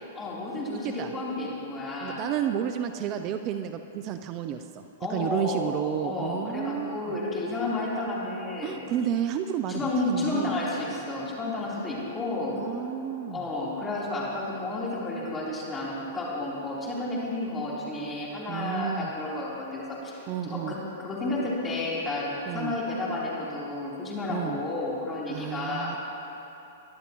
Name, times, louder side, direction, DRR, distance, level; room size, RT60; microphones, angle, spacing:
voice 1, 0.2-2.2 5.0-8.8 9.7-12.6 13.3-20.1 20.5-20.8 21.0-25.9, left 2 dB, 15° left, -6 dB, 3.5 m, -31 dB
voice 2, 2.0-4.8 5.1-7.2 8.6-10.5 12.5-13.4 18.5-19.1 20.3-20.7 22.5-22.7 24.3-24.6 25.3-26.0, right 9 dB, 40° right, 8 dB, 0.5 m, -31 dB
21.5 x 11.5 x 3.1 m, 3.0 s
hypercardioid pair, 125°, 0 cm